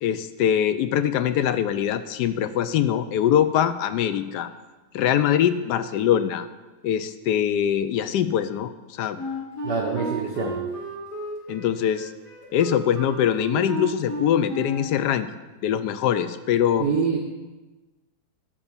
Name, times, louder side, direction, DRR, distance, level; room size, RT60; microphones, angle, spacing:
voice 1, 0.0-4.5 4.9-6.5 6.8-9.2 11.5-12.1 12.5-15.3 15.6-16.9, left 9 dB, 90° left, 12 dB, 1.2 m, -23 dB
Wind instrument woodwind instrument, 9.2-15.1, equal, 55° left, 2.3 m, -33 dB
voice 2, 9.6-10.6 16.8-17.2, right 6 dB, 85° right, 0 dB, 1.6 m, -25 dB
12.0 x 5.5 x 7.2 m, 1.2 s
omnidirectional pair, 1.8 m